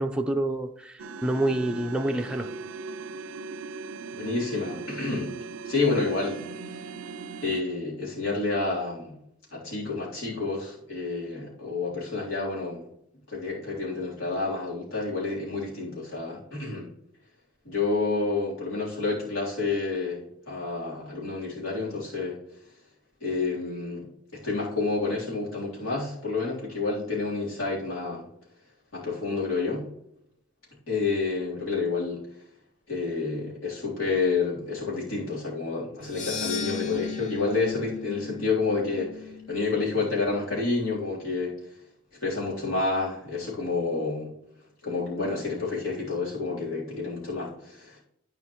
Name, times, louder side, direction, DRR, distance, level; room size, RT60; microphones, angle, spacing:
voice 1, 0.0-2.5, right 1 dB, 5° right, 3 dB, 0.5 m, -27 dB
sound 1, 1.0-7.6, right 4 dB, 85° right, 0.5 m, -39 dB
voice 2, 4.2-5.3 5.7-6.4 7.4-9.2 9.5-12.8 13.3-16.9 17.7-20.2 20.5-22.4 23.2-28.3 28.9-29.9 30.9-32.2 32.9-41.5 42.2-44.3 44.8-48.0, left 3 dB, 80° left, -6 dB, 3.5 m, -29 dB
sound 2, 36.0-40.3, left 6 dB, 35° left, 0.9 m, -37 dB
13.5 x 5.0 x 3.1 m, 0.77 s
head